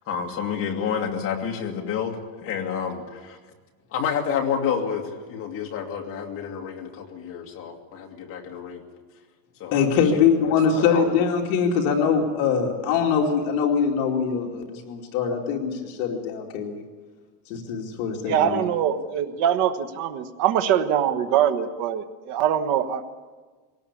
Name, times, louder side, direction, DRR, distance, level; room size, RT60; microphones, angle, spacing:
voice 1, 0.1-3.4 3.9-8.8 9.6-11.2, left 7 dB, 30° left, 1 dB, 2.3 m, -29 dB
voice 2, 9.7-16.8 17.5-18.6, left 6 dB, 50° left, 1 dB, 2.7 m, -23 dB
voice 3, 18.3-23.1, right 9 dB, 40° right, 9 dB, 1.3 m, -23 dB
21.0 x 18.0 x 8.5 m, 1.4 s
supercardioid pair, 170°, 47 cm